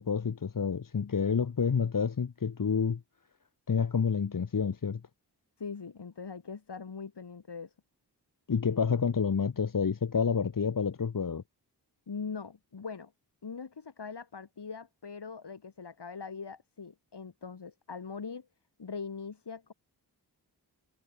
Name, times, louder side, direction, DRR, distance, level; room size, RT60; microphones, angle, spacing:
voice 1, 0.0-3.0 3.7-5.0 8.5-11.4, left 6 dB, 50° left, 1.3 m, -29 dB
voice 2, 5.6-7.7 12.1-13.1 13.4-18.5 18.8-19.7, left 5 dB, 75° left, 7.7 m, -41 dB
cardioid pair, 50°, 41 cm